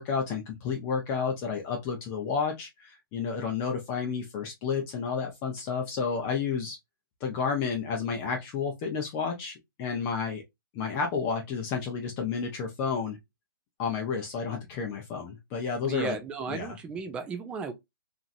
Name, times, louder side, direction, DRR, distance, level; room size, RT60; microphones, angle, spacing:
voice 1, 0.0-6.8 7.2-10.4 10.7-13.2 13.8-16.2 16.5-16.8, left 5 dB, 25° left, 0.6 m, -31 dB
voice 2, 15.8-17.7, right 5 dB, 10° right, 0.3 m, -35 dB
2.9 x 2.6 x 2.5 m
hypercardioid pair, 150°, 12 cm